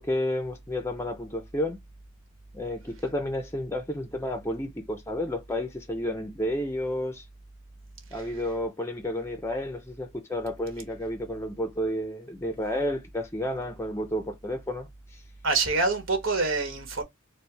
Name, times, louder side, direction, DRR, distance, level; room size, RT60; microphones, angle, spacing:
voice 1, 0.0-1.8 2.5-7.2 8.1-15.2, left 1 dB, 15° left, 0.5 m, -31 dB
voice 2, 15.4-17.0, right 3 dB, 85° right, 1.3 m, -25 dB
4.4 x 2.2 x 3.3 m
head